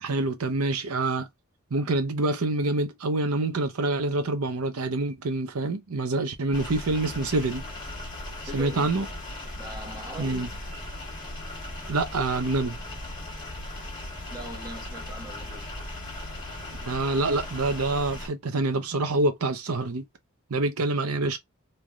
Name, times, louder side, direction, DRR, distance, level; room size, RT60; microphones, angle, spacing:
voice 1, 0.0-1.3 1.7-7.6 8.5-9.1 10.2-10.5 11.9-12.8 16.8-20.1 20.5-21.4, right 2 dB, 85° right, 0.6 m, -26 dB
sound 1, 6.5-18.3, left 1 dB, 20° left, 1.5 m, -38 dB
voice 2, 8.4-9.0 9.5-10.6 14.3-15.7, equal, 15° right, 1.0 m, -41 dB
3.2 x 2.6 x 2.3 m
head